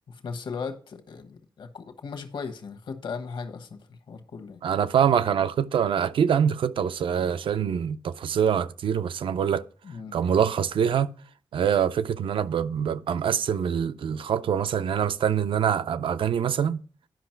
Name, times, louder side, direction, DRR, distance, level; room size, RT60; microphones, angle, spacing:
voice 1, 0.1-4.6 9.8-10.2, left 5 dB, 75° left, 1.2 m, -37 dB
voice 2, 4.6-9.7 10.1-11.1 11.5-16.8, right 8 dB, 85° right, 0.4 m, -24 dB
10.5 x 5.6 x 4.4 m
wide cardioid pair, 170°, 9 cm